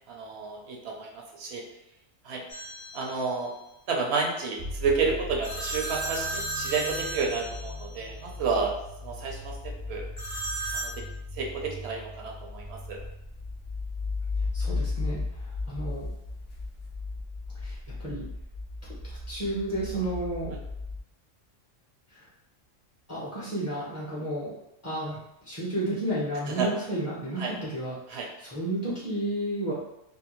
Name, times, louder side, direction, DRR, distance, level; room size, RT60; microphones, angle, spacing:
voice 1, 0.1-1.6 2.2-2.4 2.9-3.5 3.9-8.7 9.0-10.1 10.7-10.9 11.3-13.0 20.5-20.6 26.5-26.7 27.4-27.5 28.1-28.3, right 4 dB, 65° right, 0 dB, 0.8 m, -30 dB
sound 1, 2.5-3.2 5.4-8.1 10.2-11.0, right 2 dB, 60° left, 0.9 m, -35 dB
sound 2, 4.6-21.0, left 3 dB, 50° right, 0.4 m, -36 dB
voice 2, 14.5-16.1 17.6-18.2 19.0-20.5 22.1-22.3 23.1-24.5 24.8-29.7, right 1 dB, 20° left, -8 dB, 0.4 m, -32 dB
2.7 x 2.2 x 2.9 m, 0.85 s
omnidirectional pair, 1.3 m